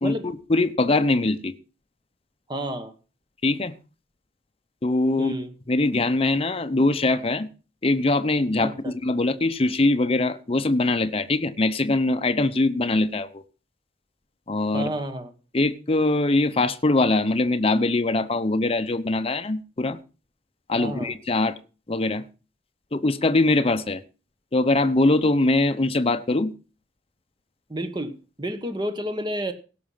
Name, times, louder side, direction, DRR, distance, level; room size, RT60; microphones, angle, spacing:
voice 1, 0.0-1.5 3.4-3.7 4.8-5.3 5.7-7.5 7.8-13.4 14.5-14.9 15.5-20.0 20.7-21.5 21.9-22.2 22.9-24.0 24.5-26.5, left 2 dB, 30° left, 0.8 m, -22 dB
voice 2, 2.5-2.9 5.2-5.5 8.6-8.9 14.7-15.3 20.7-21.2 27.7-29.5, right 1 dB, 25° right, 1.2 m, -30 dB
17.0 x 6.2 x 5.6 m
head